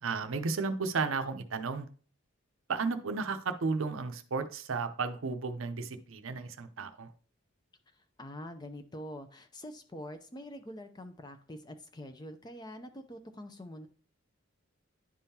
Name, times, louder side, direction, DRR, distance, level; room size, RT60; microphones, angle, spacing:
voice 1, 0.0-1.9 2.7-7.1, right 4 dB, 70° right, 8 dB, 0.6 m, -33 dB
voice 2, 7.9-13.9, equal, 20° left, 7 dB, 0.5 m, -45 dB
10.5 x 3.7 x 2.8 m, 0.41 s
head